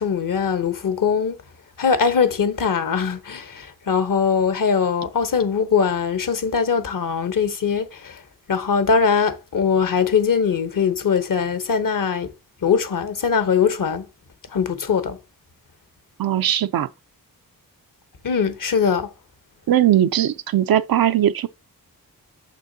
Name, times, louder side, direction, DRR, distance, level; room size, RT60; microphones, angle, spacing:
voice 1, 0.0-1.4 1.8-8.2 8.5-12.3 12.6-14.0 14.5-15.2 18.2-19.1, left 6 dB, 60° left, 1.0 m, -21 dB
voice 2, 16.2-16.9 19.7-21.5, right 11 dB, 75° right, 0.5 m, -19 dB
6.6 x 6.0 x 2.7 m
cardioid pair, 75°, 36 cm